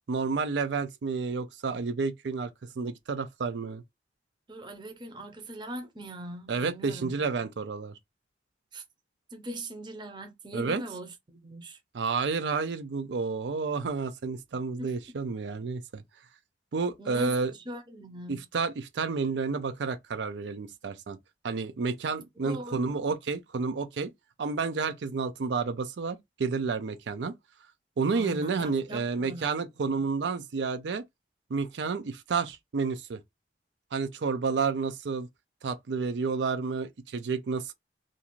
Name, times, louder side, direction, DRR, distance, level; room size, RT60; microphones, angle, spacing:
voice 1, 0.1-2.5 2.8-3.8 6.5-8.0 10.5-10.8 11.9-16.0 16.7-17.5 18.3-21.2 21.4-24.1 24.4-27.4 28.0-31.0 31.5-33.2 33.9-35.3 35.6-37.7, right 4 dB, 85° right, 0.4 m, -30 dB
voice 2, 4.5-7.3 8.7-8.8 9.3-11.8 14.8-14.9 17.0-18.5 22.4-22.8 28.1-30.0, right 1 dB, 25° right, 0.6 m, -41 dB
2.5 x 2.4 x 2.9 m
head